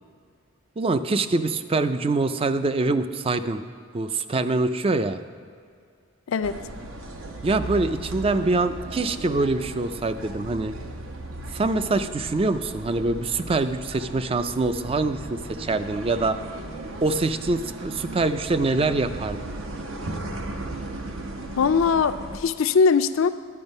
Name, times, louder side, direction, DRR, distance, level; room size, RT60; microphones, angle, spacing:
voice 1, 0.8-3.6 3.9-5.2 7.4-10.7 11.5-16.4 17.0-19.4, right 3 dB, 30° right, 11 dB, 0.4 m, -24 dB
voice 2, 6.3-6.6 21.6-23.3, left 5 dB, 75° left, 12 dB, 0.4 m, -21 dB
sound 1, 6.4-22.4, right 2 dB, 75° right, 0.9 m, -36 dB
10.5 x 8.7 x 5.4 m, 2.2 s
head